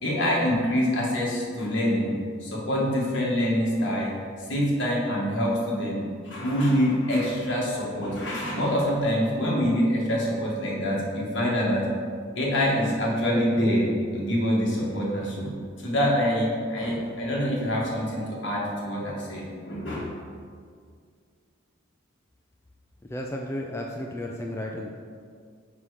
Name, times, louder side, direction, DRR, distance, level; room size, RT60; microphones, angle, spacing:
voice 1, 0.0-2.2 2.4-4.1 4.5-11.8 12.4-15.5 15.8-20.1, equal, 60° left, -4 dB, 1.8 m, -25 dB
voice 2, 23.0-24.9, left 1 dB, 15° left, 0 dB, 0.4 m, -33 dB
6.0 x 5.6 x 4.9 m, 2.1 s
head